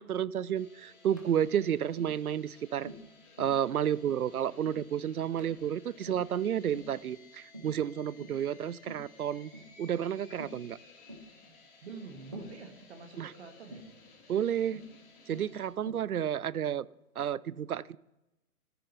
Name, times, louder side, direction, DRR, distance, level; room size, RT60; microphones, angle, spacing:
voice 1, 0.0-2.9 3.4-9.5 9.8-10.8 13.2-13.3 14.3-14.8 15.3-16.9 17.2-18.0, right 9 dB, 75° right, 0.5 m, -31 dB
sound 1, 0.5-15.7, left 4 dB, 35° left, 2.8 m, -58 dB
Tap, 1.2-1.4 2.0-2.2 2.9-3.1 3.4-3.6 4.1-4.3 4.6-4.9 5.4-5.6 6.1-6.3 6.7-7.0 7.5-7.8 8.2-8.5 8.9-9.1 9.5-9.7 10.4-10.6 11.1-11.3 12.3-12.6 13.7-13.9 14.7-15.0 15.3-15.6 15.9-16.1, right 1 dB, 15° right, 0.4 m, -46 dB
voice 2, 11.8-13.9, right 4 dB, 45° right, 1.5 m, -46 dB
14.0 x 6.5 x 4.1 m
figure-of-eight pair, 130°, 45 cm